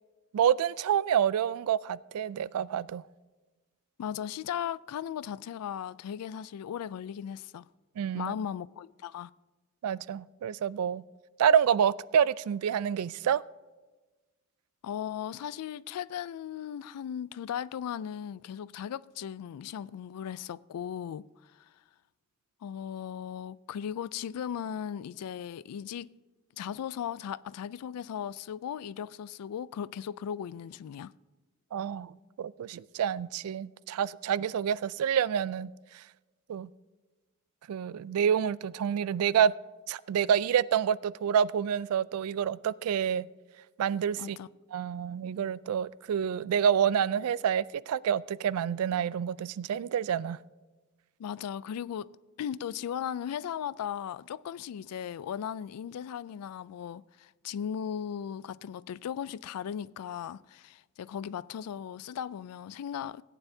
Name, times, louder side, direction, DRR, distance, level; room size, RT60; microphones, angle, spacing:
voice 1, 0.3-3.0 8.0-8.3 9.8-11.0 11.4-13.4 31.7-36.0 36.5-36.7 37.7-39.5 39.9-43.3 43.8-44.4 44.7-50.4, right 8 dB, 70° right, 0.3 m, -28 dB
voice 2, 4.0-7.7 8.1-9.3 14.8-21.2 21.5-21.7 22.6-26.1 26.6-31.1 44.2-44.5 51.2-52.1 52.4-63.2, left 9 dB, 85° left, 0.3 m, -37 dB
17.5 x 9.1 x 2.7 m
head